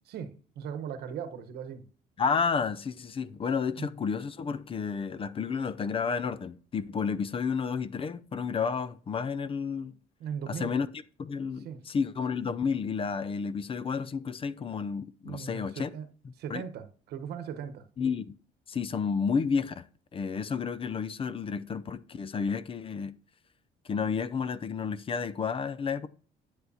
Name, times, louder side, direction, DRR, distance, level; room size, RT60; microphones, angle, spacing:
voice 1, 0.1-1.8 3.8-3.9 10.2-10.8 11.6-11.8 15.2-16.1 16.4-17.8, right 7 dB, 75° right, 1.1 m, -38 dB
voice 2, 2.2-10.0 10.5-10.9 11.2-15.9 16.2-16.6 18.0-18.3 18.7-19.9 20.1-23.2 23.8-26.1, left 5 dB, 35° left, 0.5 m, -31 dB
10.5 x 7.9 x 2.8 m
cardioid pair, 110°, 17 cm